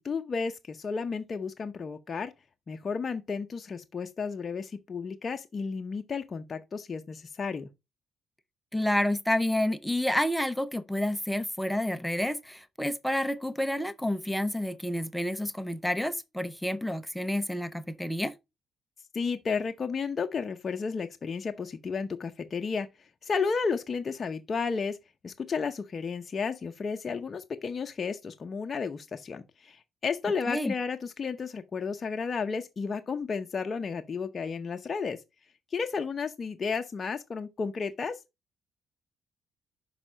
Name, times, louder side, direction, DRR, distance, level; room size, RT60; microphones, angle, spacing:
voice 1, 0.1-2.3 2.7-7.7 19.1-22.9 23.2-25.0 25.2-35.2 35.7-38.2, left 5 dB, 40° left, 0.7 m, -32 dB
voice 2, 8.7-18.3 30.5-30.7, left 1 dB, 5° left, 0.7 m, -29 dB
5.9 x 5.4 x 4.9 m
cardioid pair, 90°, 0 cm